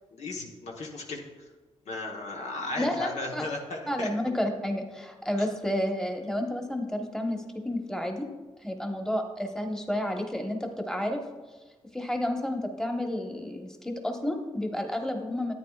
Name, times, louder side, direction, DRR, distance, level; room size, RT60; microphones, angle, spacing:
voice 1, 0.1-1.2 1.9-4.1 5.4-5.5, left 2 dB, 75° left, 0 dB, 1.2 m, -35 dB
voice 2, 2.8-3.4 3.9-8.3 8.6-11.2 11.9-15.5, left 1 dB, 5° left, 3 dB, 1.2 m, -31 dB
10.0 x 8.8 x 2.4 m, 1.3 s
supercardioid pair, 55°, 12 cm